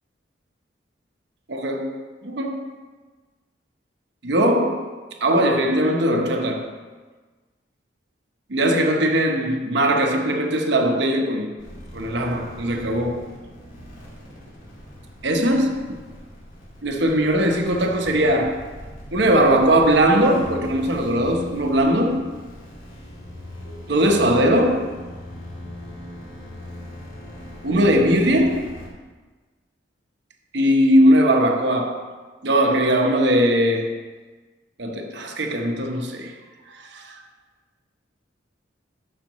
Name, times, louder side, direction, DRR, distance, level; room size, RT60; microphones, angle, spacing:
voice 1, 1.5-2.7 4.2-4.9 5.2-6.7 8.5-11.6 11.9-13.3 15.2-16.0 16.8-18.7 19.1-22.3 23.7-25.0 27.6-28.7 30.5-32.1 32.4-34.0 34.8-36.3 36.7-37.2, right 1 dB, 65° right, 3 dB, 1.0 m, -20 dB
sound 1, 11.6-28.9, left 1 dB, 85° left, 2.4 m, -40 dB
12.0 x 6.5 x 3.1 m, 1.3 s
head